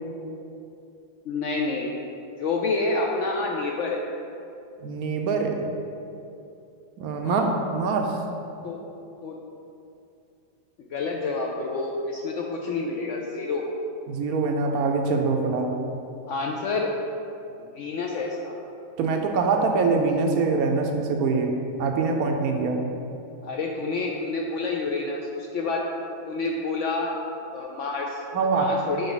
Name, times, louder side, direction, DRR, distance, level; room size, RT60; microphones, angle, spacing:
voice 1, 1.3-1.9 2.4-4.0 7.2-7.5 8.6-8.8 9.2-9.4 10.9-13.6 16.3-16.9 17.7-18.6 23.4-25.9 26.3-27.2 27.5-28.2 28.5-29.1, left 3 dB, 70° left, -1 dB, 0.7 m, -28 dB
voice 2, 4.8-5.6 7.0-8.2 14.1-15.7 19.0-21.5 21.8-22.8 28.3-28.7, right 4 dB, 70° right, 3 dB, 1.0 m, -24 dB
6.6 x 4.8 x 3.9 m, 2.7 s
omnidirectional pair, 1.7 m